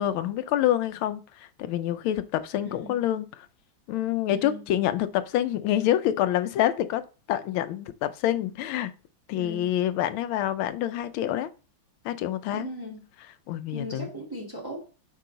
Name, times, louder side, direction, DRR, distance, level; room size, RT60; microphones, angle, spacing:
voice 1, 0.0-3.5 3.9-7.0 7.3-8.9 9.3-11.5 12.0-12.7 13.5-14.1, left 12 dB, 85° left, 1.4 m, -27 dB
voice 2, 2.6-2.9 4.3-4.6 9.4-9.7 12.5-13.0 13.7-14.8, equal, 10° right, 1.4 m, -38 dB
5.7 x 4.6 x 3.9 m
omnidirectional pair, 2.2 m